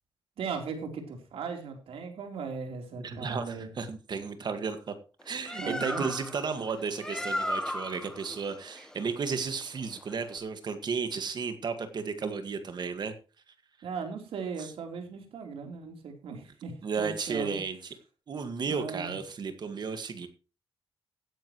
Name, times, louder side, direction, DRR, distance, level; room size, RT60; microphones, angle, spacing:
voice 1, 0.4-3.7 5.6-6.0 13.8-17.6 18.7-19.1, right 5 dB, 85° right, 4 dB, 3.7 m, -38 dB
voice 2, 3.0-4.9 5.2-13.1 14.6-14.7 16.8-17.8 18.3-20.3, right 5 dB, 50° right, 9 dB, 1.8 m, -33 dB
Bird, 5.2-10.4, left 1 dB, 5° left, 1.1 m, -37 dB
16.5 x 10.0 x 3.1 m, 0.34 s
cardioid pair, 115°, 9 cm